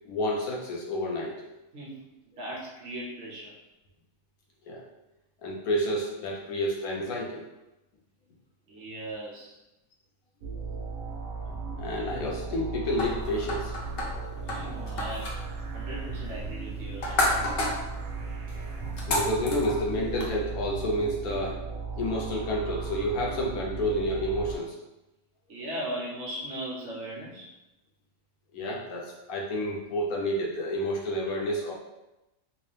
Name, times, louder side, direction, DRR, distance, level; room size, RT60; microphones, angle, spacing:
voice 1, 0.0-1.4 4.7-4.8 5.4-7.4 11.8-13.7 14.8-14.9 18.6-18.7 19.1-21.6 22.0-24.7 28.5-31.7, equal, 90° left, -2 dB, 1.3 m, -30 dB
voice 2, 1.7-3.6 8.7-9.6 11.9-12.0 14.4-15.4 15.7-17.2 25.5-27.5, right 1 dB, 60° right, -5 dB, 1.2 m, -38 dB
sound 1, 10.4-24.6, right 4 dB, 85° right, 1.1 m, -36 dB
sound 2, 13.0-20.3, left 1 dB, 55° left, 0.8 m, -33 dB
3.3 x 2.7 x 3.3 m, 0.97 s
omnidirectional pair, 1.4 m